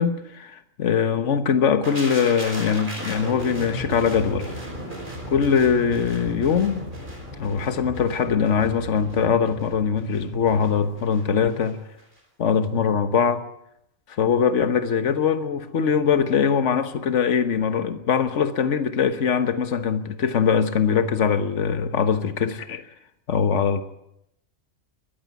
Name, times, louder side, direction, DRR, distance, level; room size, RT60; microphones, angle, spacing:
voice 1, 0.0-4.5 5.3-6.9 7.4-11.8 12.4-13.4 14.1-22.8 23.3-23.8, left 7 dB, 75° left, 10 dB, 1.5 m, -22 dB
sound 1, 1.8-11.7 12.0-12.2, equal, 40° right, 5.6 m, -36 dB
21.5 x 14.5 x 9.4 m, 0.80 s
omnidirectional pair, 1.3 m